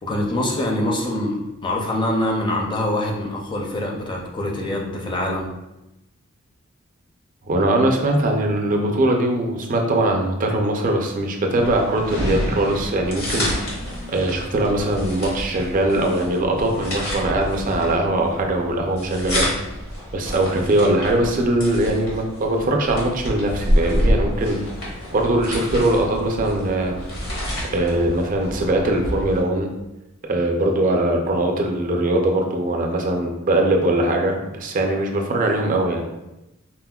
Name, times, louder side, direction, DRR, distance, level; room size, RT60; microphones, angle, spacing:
voice 1, 0.0-5.5, left 1 dB, 20° left, -1 dB, 0.4 m, -24 dB
voice 2, 7.5-13.5 14.1-19.5 20.1-24.6 25.1-26.9 27.7-29.7 30.3-36.1, right 1 dB, 40° right, 2 dB, 0.4 m, -21 dB
flipping pages, 11.5-29.4, equal, 80° left, 1.1 m, -28 dB
4.1 x 2.1 x 2.2 m, 0.95 s
head